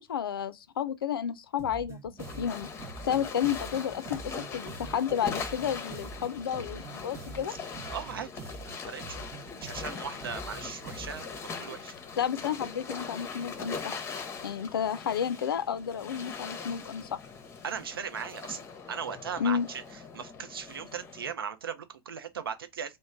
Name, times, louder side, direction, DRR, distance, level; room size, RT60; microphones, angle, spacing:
voice 1, 0.0-2.1 2.4-2.7 3.0-7.5 12.2-13.9 14.4-17.2 19.4-19.7, left 8 dB, 70° left, 0.4 m, -31 dB
sound 1, 1.6-11.4, right 4 dB, 20° right, 0.7 m, -45 dB
sound 2, 2.2-21.3, left 5 dB, 20° left, 0.7 m, -41 dB
voice 2, 7.9-8.3 8.6-9.2 9.5-11.9 17.6-19.8 20.1-23.0, right 7 dB, 75° right, 0.6 m, -38 dB
3.0 x 2.1 x 3.6 m
figure-of-eight pair, 90°, 12 cm